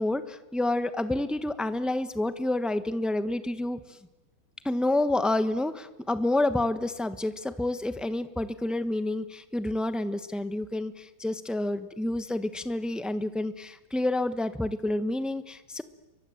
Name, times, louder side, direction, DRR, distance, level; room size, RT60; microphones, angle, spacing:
voice 1, 0.0-3.8 4.6-15.8, left 2 dB, ahead, 11 dB, 0.4 m, -29 dB
29.5 x 24.0 x 7.9 m, 1.1 s
omnidirectional pair, 2.3 m